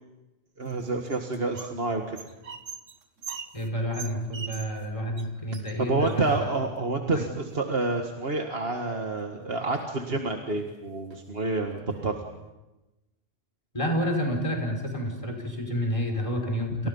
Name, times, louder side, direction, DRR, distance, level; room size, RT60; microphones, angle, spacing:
voice 1, 0.6-2.2 5.8-12.2 16.8-16.9, right 3 dB, 50° right, 3 dB, 2.0 m, -28 dB
sound 1, 0.7-1.8 2.1-4.9 5.2-5.3 5.5-6.7 7.3-8.0 9.1-9.2 9.5-10.0 10.5-10.7 11.1-11.2 11.7-12.5, right 6 dB, 80° right, 1.8 m, -43 dB
voice 2, 3.5-6.5 7.1-7.2 13.7-16.9, equal, 25° left, 3 dB, 5.7 m, -29 dB
30.0 x 29.0 x 5.6 m, 1.0 s
omnidirectional pair, 1.3 m